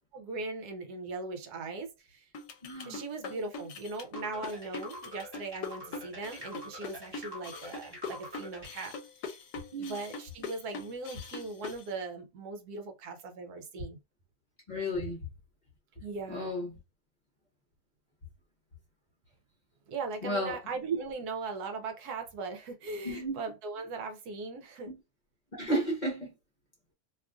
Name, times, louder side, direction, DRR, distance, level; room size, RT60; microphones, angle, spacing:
voice 1, 0.1-2.3 2.9-8.9 9.8-14.0 16.0-16.5 19.9-24.9, right 3 dB, 75° right, 1.1 m, -39 dB
sound 1, 2.3-11.8, left 4 dB, 75° left, 1.1 m, -42 dB
voice 2, 2.6-3.0 9.7-9.9 14.7-15.2 16.3-16.8 20.2-20.6 23.0-23.4 24.9-25.0 25.5-26.3, equal, 35° left, 0.9 m, -33 dB
sound 2, 4.1-8.8, equal, 15° right, 1.2 m, -45 dB
3.0 x 2.4 x 2.3 m
omnidirectional pair, 1.8 m